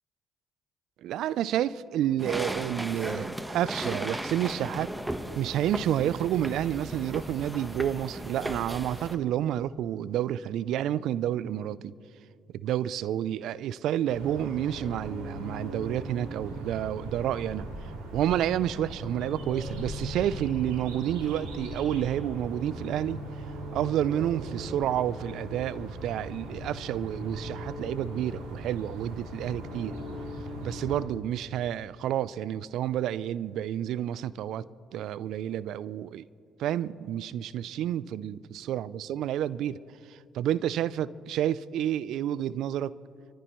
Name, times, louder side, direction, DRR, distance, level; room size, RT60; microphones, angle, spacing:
voice 1, 1.0-4.9 5.3-11.9 12.5-17.7 18.1-23.2 23.7-30.0 30.6-34.7 34.9-36.2 36.6-39.8 40.1-43.0, right 11 dB, 70° right, 0.4 m, -30 dB
sound 1, 2.2-9.2, right 1 dB, 10° right, 1.1 m, -36 dB
sound 2, 14.1-31.0, right 1 dB, 90° right, 3.0 m, -39 dB
28.0 x 14.0 x 3.1 m
supercardioid pair, 60°, 0 cm